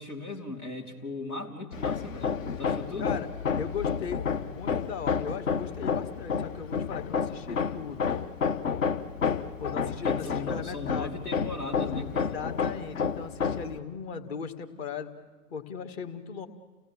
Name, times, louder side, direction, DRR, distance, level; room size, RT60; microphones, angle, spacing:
voice 1, 0.0-3.2 9.9-12.4, left 2 dB, 85° left, -1 dB, 3.4 m, -38 dB
Hammer, 1.7-13.8, left 6 dB, 60° left, 1.3 m, -30 dB
voice 2, 3.6-8.1 9.6-11.1 12.1-15.1 15.5-16.5, left 6 dB, 45° left, 7 dB, 2.0 m, -38 dB
29.5 x 17.5 x 7.3 m, 1.3 s
figure-of-eight pair, 115°, 44 cm